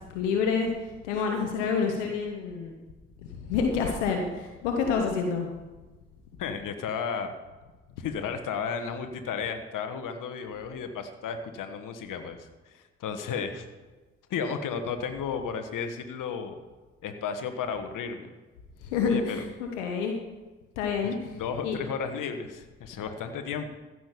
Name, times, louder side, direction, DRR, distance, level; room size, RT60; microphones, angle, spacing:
voice 1, 0.1-0.7 1.0-2.7 3.5-5.5 18.9-20.1 20.8-21.1 21.6-21.8, left 5 dB, 85° left, 3 dB, 1.2 m, -27 dB
voice 2, 6.4-7.3 8.0-13.7 14.3-16.6 17.0-18.3 19.1-19.5 21.0-23.7, left 6 dB, 60° left, 7 dB, 1.5 m, -33 dB
15.0 x 6.4 x 6.9 m, 1.2 s
hypercardioid pair, 40°, 35 cm